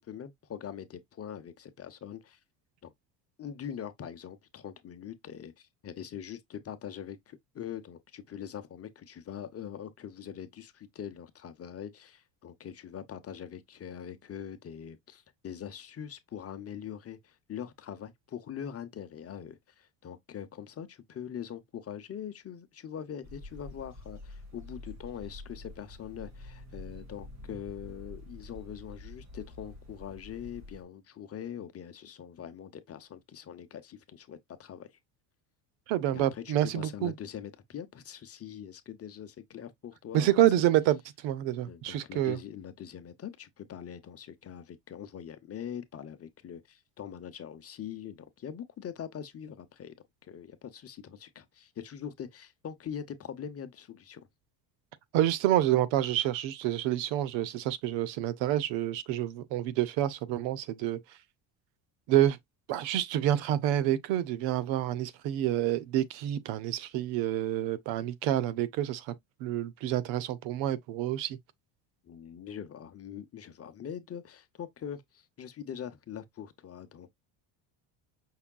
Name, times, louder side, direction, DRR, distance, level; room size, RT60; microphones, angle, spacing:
voice 1, 0.0-2.4 2.8-2.9 3.4-35.0 36.1-40.5 41.7-49.9 50.2-54.3 72.0-77.1, left 9 dB, 30° left, 0.7 m, -43 dB
sound 1, 23.2-30.8, left 2 dB, 35° right, 1.7 m, -47 dB
voice 2, 35.9-37.1 40.1-42.4 55.1-61.0 62.1-62.4 62.7-69.1 69.4-71.4, right 12 dB, 75° right, 0.8 m, -28 dB
5.8 x 3.4 x 2.2 m
supercardioid pair, 110°, 46 cm